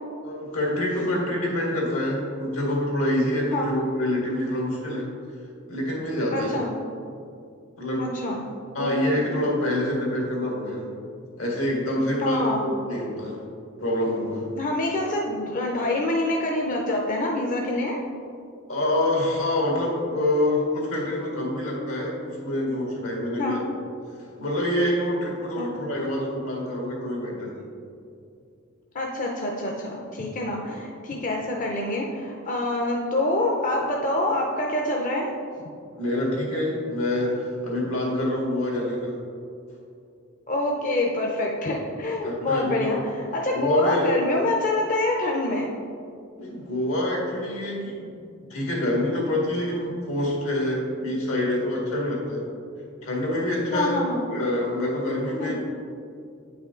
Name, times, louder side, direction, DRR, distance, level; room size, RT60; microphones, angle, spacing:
voice 1, 0.2-5.1 5.7-6.6 7.8-8.1 8.7-10.9 11.4-13.4 13.8-14.5 18.7-23.6 24.2-27.6 36.0-39.1 42.2-42.9 43.5-44.1 46.4-48.1 48.5-52.4 53.0-54.0 54.3-55.5, left 1 dB, 80° left, -2 dB, 2.0 m, -26 dB
voice 2, 6.3-6.7 8.0-8.4 8.8-9.3 12.2-12.7 14.5-18.0 23.4-23.6 25.6-25.7 28.9-35.3 40.5-45.7 53.7-54.3 55.4-55.5, left 1 dB, 40° left, -1 dB, 0.7 m, -26 dB
8.9 x 5.7 x 3.8 m, 2.4 s
head